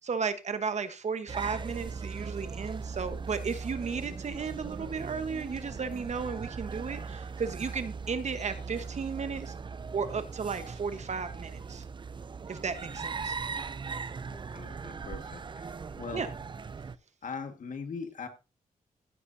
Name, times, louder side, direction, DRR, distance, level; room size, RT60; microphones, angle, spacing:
voice 1, 0.0-9.5 9.9-11.8 12.5-13.4 16.1-16.3, right 5 dB, 50° right, 1.2 m, -34 dB
sound 1, 1.3-17.0, right 5 dB, 30° right, 0.5 m, -39 dB
voice 2, 14.3-16.2 17.2-18.3, left 5 dB, 60° left, 1.7 m, -41 dB
16.0 x 8.1 x 2.7 m
cardioid pair, 105°, 15 cm